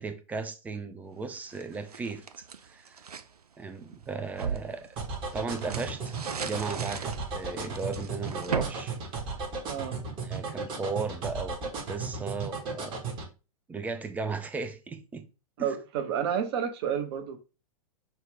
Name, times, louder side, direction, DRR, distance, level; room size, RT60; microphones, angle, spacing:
voice 1, 0.0-3.0 3.6-4.9 5.3-6.2 6.4-9.0 10.2-13.1 13.7-15.3 15.6-15.7, right 4 dB, 10° right, 0.4 m, -36 dB
sound 1, 1.3-3.3 3.8-9.9, right 6 dB, 80° right, 0.5 m, -38 dB
sound 2, 5.0-13.3, right 4 dB, 25° right, 1.1 m, -34 dB
voice 2, 9.7-10.0 15.6-17.4, right 8 dB, 45° right, 0.8 m, -30 dB
5.6 x 2.4 x 3.3 m
figure-of-eight pair, 105°, 19 cm